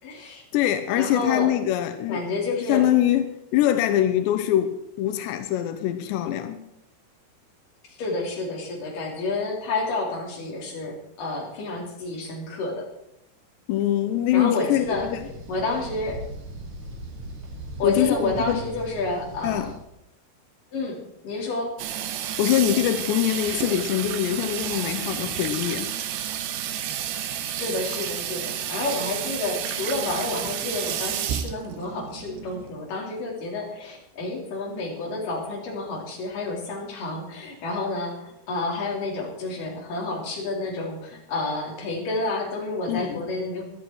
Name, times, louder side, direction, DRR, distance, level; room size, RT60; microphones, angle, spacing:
voice 1, 0.0-0.4 0.9-1.5 2.1-2.9 7.9-12.9 14.3-15.1 15.5-16.2 17.8-19.7 20.7-21.0 21.2-21.7 27.6-43.6, left 3 dB, 55° left, -1 dB, 4.8 m, -29 dB
voice 2, 0.5-2.2 2.7-6.6 13.7-15.3 17.8-18.6 19.4-19.7 22.4-25.9 42.9-43.2, left 12 dB, 90° left, 9 dB, 3.0 m, -23 dB
sound 1, 14.8-19.8, right 1 dB, 45° right, 1.9 m, -39 dB
Water tap faucet / Sink (filling or washing), 21.8-32.7, right 10 dB, 85° right, 3.1 m, -31 dB
17.0 x 12.0 x 4.6 m, 0.81 s
omnidirectional pair, 4.8 m